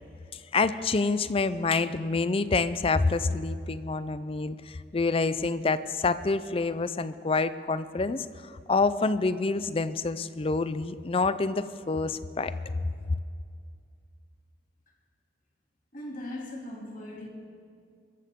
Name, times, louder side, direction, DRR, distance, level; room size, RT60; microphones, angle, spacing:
voice 1, 0.5-8.3 8.7-12.5, left 3 dB, 30° left, 14 dB, 0.5 m, -27 dB
voice 2, 15.9-17.3, left 1 dB, 50° left, -1 dB, 2.7 m, -39 dB
23.5 x 14.5 x 3.7 m, 2.2 s
head